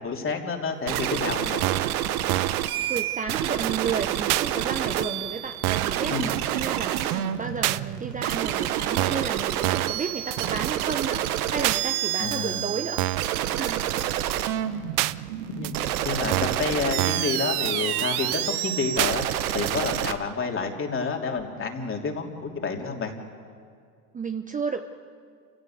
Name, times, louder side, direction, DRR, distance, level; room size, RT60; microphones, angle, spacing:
voice 1, 0.0-1.7 6.1-6.3 12.2-12.7 15.5-15.8 16.0-19.2 19.5-23.1, left 4 dB, 25° left, 2 dB, 3.3 m, -29 dB
sound 1, 0.9-1.0 1.6-1.9 2.3-2.6 3.0-3.1 3.3-3.4 3.6-3.7 4.3-4.5 5.0-5.1 5.6-5.9 6.3-6.4 6.6-6.7 7.0-7.1 7.6-7.8 8.3-8.4 9.0-9.3 9.6-10.0 10.3-10.4 10.6-10.7 11.0-11.1 11.6-11.8 12.3-12.4 13.0-13.3 13.6-13.7 14.0-14.1 14.3-14.4 15.0-15.1 15.6-15.7 16.3-16.6 17.0-17.3 17.6-17.7 18.0-18.1 18.3-18.4 19.0-19.1 19.6-19.7, right 18 dB, 45° right, 0.7 m, -27 dB
sound 2, 0.9-20.1, right 12 dB, 70° right, 1.3 m, -28 dB
voice 2, 2.9-13.0 13.6-13.9 24.1-24.8, right 5 dB, 15° right, 7 dB, 0.9 m, -32 dB
28.5 x 17.0 x 8.0 m, 2.2 s
hypercardioid pair, 90°, 46 cm